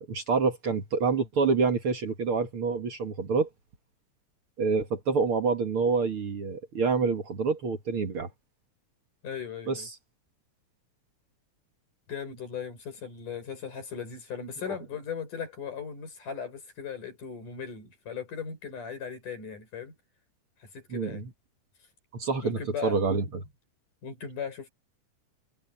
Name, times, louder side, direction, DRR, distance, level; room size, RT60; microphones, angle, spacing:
voice 1, 0.0-3.5 4.6-8.3 9.7-9.9 14.7-14.8 20.9-21.3 22.1-23.4, right 4 dB, 50° right, 2.3 m, -27 dB
voice 2, 9.2-9.9 12.1-20.0 20.6-21.3 22.4-23.0 24.0-24.7, left 6 dB, 80° left, 7.7 m, -38 dB
omnidirectional pair, 3.6 m